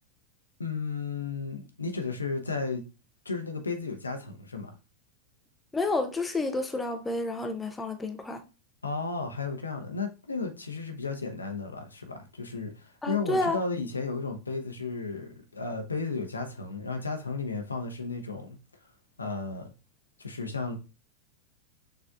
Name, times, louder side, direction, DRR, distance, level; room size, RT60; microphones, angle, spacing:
voice 1, 0.6-2.8 3.2-4.7 8.8-18.6 19.2-19.7 20.2-20.8, left 4 dB, 75° left, 0.8 m, -34 dB
voice 2, 5.7-8.4 13.0-13.6, left 2 dB, 10° left, 0.5 m, -30 dB
6.4 x 3.4 x 2.4 m
figure-of-eight pair, 90°, 0 cm